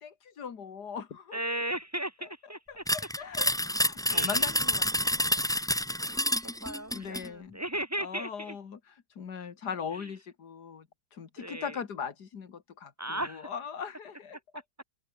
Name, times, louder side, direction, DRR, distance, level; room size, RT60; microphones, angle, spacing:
voice 1, 0.0-1.4 2.7-5.5 6.9-7.6 8.0-14.4, left 6 dB, 85° left, 2.4 m, -40 dB
voice 2, 1.3-2.8 4.1-5.1 6.0-8.6 9.9-10.1 11.4-11.8 13.0-13.5 14.5-14.6, right 1 dB, 10° right, 1.5 m, -37 dB
sound 1, 2.9-7.3, left 1 dB, 5° left, 0.3 m, -28 dB
open air
omnidirectional pair, 1.7 m